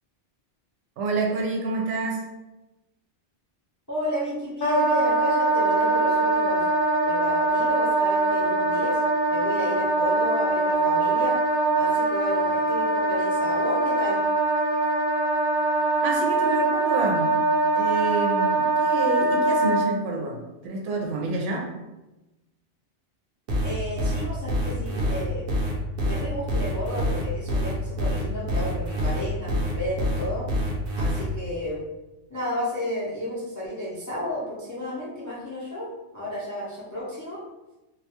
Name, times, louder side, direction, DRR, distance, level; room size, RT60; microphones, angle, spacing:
voice 1, 1.0-2.2 16.0-17.3 17.7-21.7, right 3 dB, 90° right, 0 dB, 0.9 m, -28 dB
voice 2, 3.9-6.7 7.0-9.0 9.3-11.4 11.8-14.2 23.6-25.6 26.0-30.5 31.0-31.8 32.3-35.9 36.1-37.4, left 1 dB, 25° left, -8 dB, 0.4 m, -32 dB
Wind instrument woodwind instrument, 4.6-19.9, right 2 dB, 55° left, 0.8 m, -23 dB
sound 1, 23.5-31.2, equal, 60° right, 0.7 m, -26 dB
2.3 x 2.2 x 2.8 m, 1.0 s
omnidirectional pair, 1.2 m